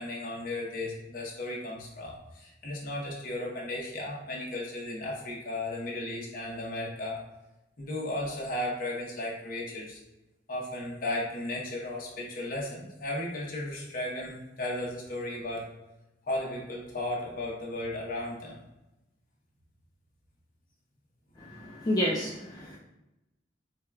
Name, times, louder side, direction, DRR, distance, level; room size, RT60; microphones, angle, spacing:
voice 1, 0.0-7.2 7.8-10.0 10.5-15.7 16.3-18.6, left 1 dB, 50° left, -3 dB, 0.8 m, -35 dB
voice 2, 21.4-22.8, equal, 20° left, -4 dB, 0.3 m, -30 dB
4.5 x 2.2 x 2.2 m, 0.97 s
head